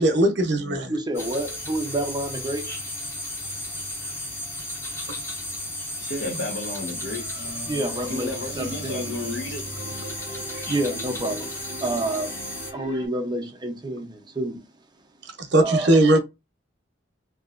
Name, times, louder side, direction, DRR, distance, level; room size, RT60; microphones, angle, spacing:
voice 1, 0.0-0.9 15.5-16.2, right 1 dB, 65° right, 0.8 m, -19 dB
voice 2, 0.9-2.7 7.7-9.2 10.6-11.5 11.8-12.3 12.7-14.6 15.6-16.0, right 1 dB, 25° right, 0.6 m, -28 dB
sound 1, 1.1-12.7, left 1 dB, 15° left, 0.9 m, -34 dB
voice 3, 6.0-7.3 8.1-9.6, left 2 dB, 70° left, 1.0 m, -32 dB
sound 2, 7.0-13.1, right 2 dB, 85° left, 1.5 m, -40 dB
2.9 x 2.8 x 2.4 m
head